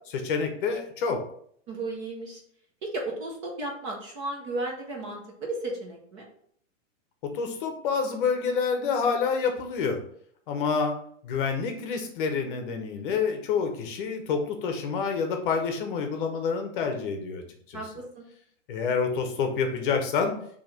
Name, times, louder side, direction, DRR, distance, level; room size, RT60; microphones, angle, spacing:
voice 1, 0.1-1.2 7.2-10.0 10.5-10.9 11.2-17.4 17.7-17.8 18.7-20.3, left 5 dB, 40° left, 5 dB, 0.8 m, -28 dB
voice 2, 1.7-2.4 2.8-6.3 17.7-18.2, right 2 dB, 25° right, -1 dB, 0.6 m, -34 dB
4.6 x 2.9 x 4.0 m, 0.64 s
supercardioid pair, 165°, 39 cm